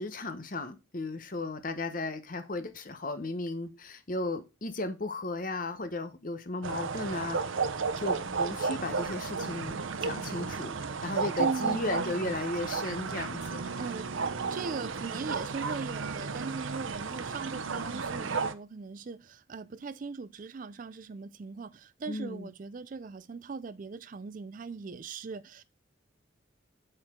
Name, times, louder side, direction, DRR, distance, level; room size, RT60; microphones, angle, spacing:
voice 1, 0.0-7.5 8.0-13.8 22.1-22.5, left 2 dB, 40° left, 0.9 m, -35 dB
sound 1, 6.6-18.5, right 4 dB, 75° right, 0.7 m, -33 dB
voice 2, 11.4-12.1 13.8-14.1 14.5-25.6, right 4 dB, 40° right, 0.4 m, -39 dB
8.6 x 4.5 x 3.7 m
head